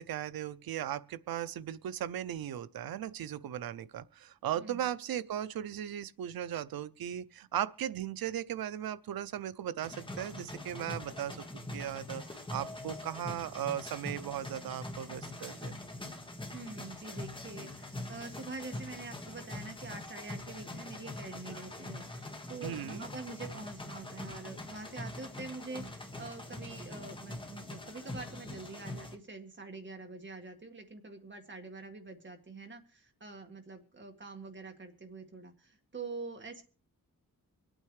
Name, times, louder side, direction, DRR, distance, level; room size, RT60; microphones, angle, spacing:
voice 1, 0.0-11.4 11.7-15.8 22.6-23.0, right 11 dB, 85° right, 0.6 m, -37 dB
voice 2, 4.6-4.9 16.5-36.6, right 3 dB, 35° right, 1.9 m, -45 dB
sound 1, 9.8-29.2, left 2 dB, 15° left, 1.7 m, -43 dB
25.0 x 8.9 x 3.2 m
wide cardioid pair, 140°, 35 cm